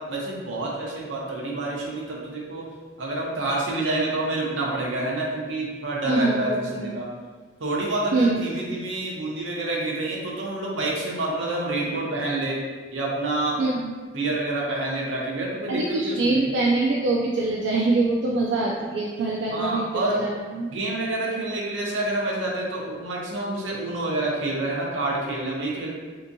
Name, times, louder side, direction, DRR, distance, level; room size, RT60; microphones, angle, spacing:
voice 1, 0.1-2.6 3.0-7.1 7.6-12.6 12.9-13.6 14.1-16.4 19.5-20.2 20.7-25.9, right 2 dB, 90° right, -3 dB, 0.8 m, -28 dB
voice 2, 6.0-7.0 8.1-8.4 13.6-13.9 15.7-20.2 20.5-20.7, right 3 dB, 70° right, -3 dB, 0.4 m, -24 dB
3.5 x 2.8 x 2.6 m, 1.4 s
head